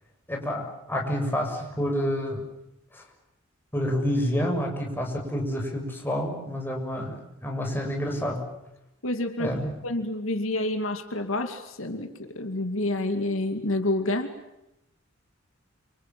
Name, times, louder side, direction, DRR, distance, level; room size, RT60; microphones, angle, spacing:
voice 1, 0.3-2.4 2.9-3.0 3.7-8.4 9.4-9.7, equal, 10° left, 1 dB, 7.1 m, -28 dB
voice 2, 9.0-9.5 9.8-14.3, left 1 dB, 75° left, 6 dB, 2.5 m, -28 dB
29.5 x 26.5 x 7.6 m, 0.87 s
head